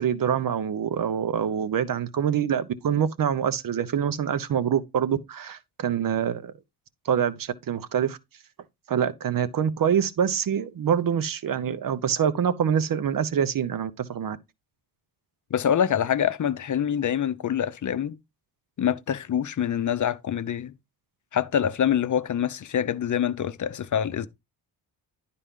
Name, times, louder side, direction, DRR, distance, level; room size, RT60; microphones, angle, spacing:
voice 1, 0.0-6.5 7.0-8.2 8.9-14.4, right 8 dB, 55° right, 0.9 m, -25 dB
voice 2, 15.5-18.2 18.8-20.7 21.3-24.3, left 9 dB, 50° left, 0.7 m, -25 dB
11.5 x 4.2 x 3.7 m
cardioid pair, 105°, 40 cm